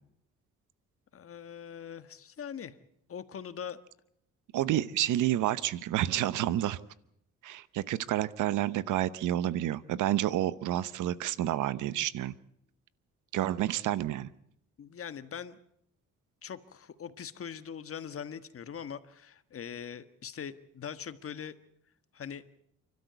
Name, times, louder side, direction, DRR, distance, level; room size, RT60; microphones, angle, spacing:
voice 1, 1.1-2.8 3.1-3.8 14.8-15.6 16.4-21.5 22.1-22.4, left 8 dB, 50° left, 12 dB, 1.5 m, -42 dB
voice 2, 4.5-6.8 7.4-12.3 13.3-14.3, right 13 dB, 80° right, 17 dB, 0.9 m, -29 dB
29.5 x 12.5 x 8.0 m, 0.75 s
cardioid pair, 90°, 30 cm